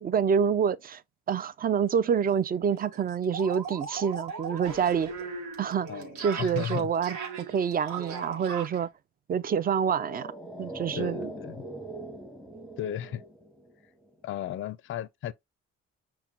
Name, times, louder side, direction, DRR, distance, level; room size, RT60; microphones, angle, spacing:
voice 1, 0.0-1.0 1.3-5.1 5.6-7.2 7.5-8.9 9.3-10.3 10.6-11.3, right 7 dB, 30° right, 0.4 m, -27 dB
sound 1, 1.9-2.0 2.3-2.4 2.7-8.9, right 5 dB, 90° right, 1.0 m, -39 dB
voice 2, 5.9-6.9 11.0-11.7 12.8-13.2 14.2-15.3, left 10 dB, 45° left, 0.4 m, -35 dB
sound 2, 9.5-14.1 14.3-14.4, right 2 dB, ahead, 0.9 m, -41 dB
5.8 x 2.2 x 3.6 m
cardioid pair, 90°, 30 cm